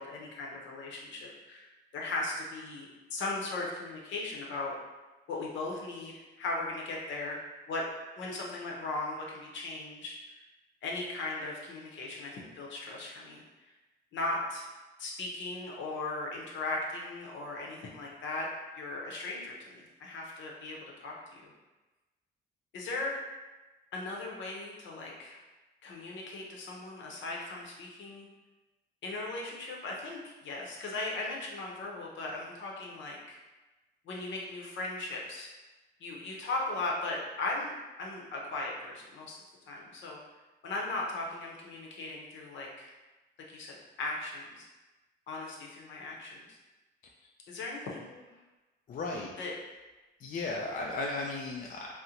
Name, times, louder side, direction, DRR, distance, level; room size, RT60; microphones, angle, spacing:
voice 1, 0.0-4.7 5.3-7.9 8.2-10.2 10.8-13.4 14.1-14.7 15.0-18.5 18.8-21.5 22.7-23.2 23.9-25.4 25.8-28.3 29.0-33.4 34.0-35.5 36.0-39.4 39.7-40.2 40.6-42.9 43.5-43.7 44.0-44.6 45.3-46.4 47.5-48.2 49.4-49.5, left 2 dB, 70° left, -2 dB, 0.8 m, -38 dB
voice 2, 48.9-49.3 50.2-52.0, left 2 dB, 45° left, -1 dB, 0.4 m, -35 dB
3.7 x 2.1 x 2.8 m, 1.1 s
cardioid pair, 90°, 20 cm